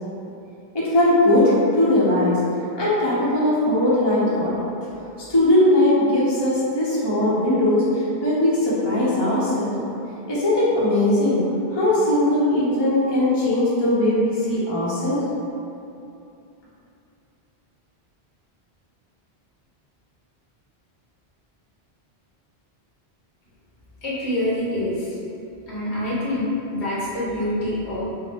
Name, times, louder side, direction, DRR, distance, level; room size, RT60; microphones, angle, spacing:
voice 1, 0.7-2.4 2.7-4.6 5.3-9.7 10.3-11.4 11.7-15.2, left 1 dB, 25° left, -8 dB, 0.8 m, -19 dB
voice 2, 24.0-25.1 25.7-28.0, left 1 dB, 80° left, -9 dB, 1.5 m, -26 dB
5.4 x 2.1 x 3.5 m, 2.7 s
omnidirectional pair, 1.1 m